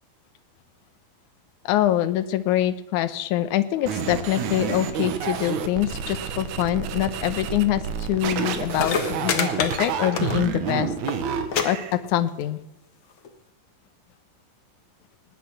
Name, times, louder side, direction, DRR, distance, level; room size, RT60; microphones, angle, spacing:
voice 1, 1.7-7.8 8.1-10.9 11.6-12.6, left 12 dB, 75° left, 13 dB, 2.1 m, -24 dB
sound 1, 3.9-11.9, right 7 dB, 65° right, 2.4 m, -29 dB
sound 2, 8.4-8.5 8.7-10.6 10.9-11.2 11.5-11.6 11.9-12.4 13.2-13.3, left 6 dB, 50° left, 1.6 m, -27 dB
19.0 x 9.2 x 5.8 m, 0.96 s
omnidirectional pair, 3.9 m